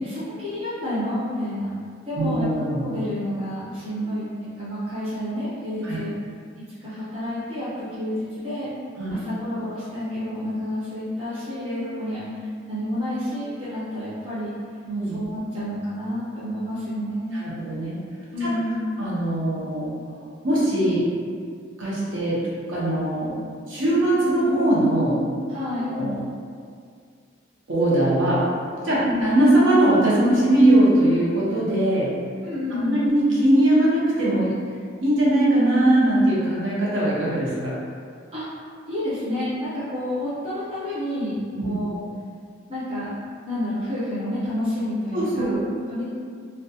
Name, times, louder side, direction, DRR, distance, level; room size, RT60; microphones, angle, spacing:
voice 1, 0.0-1.7 2.0-2.5 2.8-6.1 6.8-7.7 8.0-8.7 9.1-14.5 15.1-17.4 18.3-18.9 25.5-26.0 28.9-29.3 32.4-33.1 38.3-38.4 38.9-42.0 42.7-43.1 43.4-46.1, left 1 dB, 30° right, -13 dB, 0.7 m, -29 dB
voice 2, 2.2-2.8 4.1-4.2 5.8-6.0 9.0-9.2 14.9-15.2 17.3-18.0 18.4-18.5 19.0-19.9 20.4-21.0 21.8-22.4 22.7-23.4 23.7-25.2 25.7-26.2 27.7-28.4 28.8-32.1 32.9-34.5 35.0-37.7 41.6-41.7 45.1-45.6, right 1 dB, 65° right, -7 dB, 0.7 m, -20 dB
2.3 x 2.2 x 2.7 m, 2.1 s
head